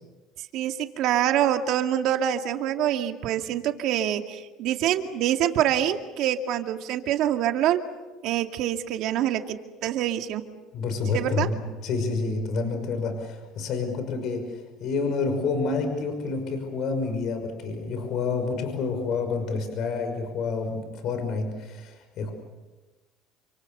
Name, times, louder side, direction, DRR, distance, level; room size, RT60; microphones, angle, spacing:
voice 1, 0.5-7.8 8.2-9.6 9.8-10.4 11.1-11.5, right 11 dB, 60° right, 5 dB, 2.3 m, -25 dB
voice 2, 10.7-22.3, left 4 dB, 55° left, 6 dB, 5.9 m, -29 dB
28.5 x 26.0 x 6.9 m, 1.2 s
supercardioid pair, 115°, 0 cm